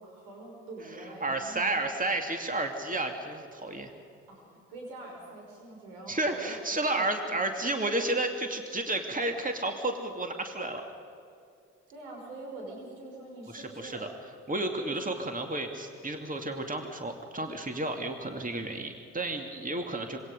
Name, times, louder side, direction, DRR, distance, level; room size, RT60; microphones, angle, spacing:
voice 1, 0.0-1.7 4.3-6.6 6.9-7.4 11.9-14.1 14.7-15.0, right 2 dB, 80° right, -1 dB, 5.7 m, -45 dB
voice 2, 1.0-3.9 6.1-10.8 13.5-14.1 14.5-20.2, right 2 dB, 20° right, 4 dB, 2.5 m, -32 dB
26.0 x 22.5 x 5.3 m, 2.5 s
hypercardioid pair, 40°, 39 cm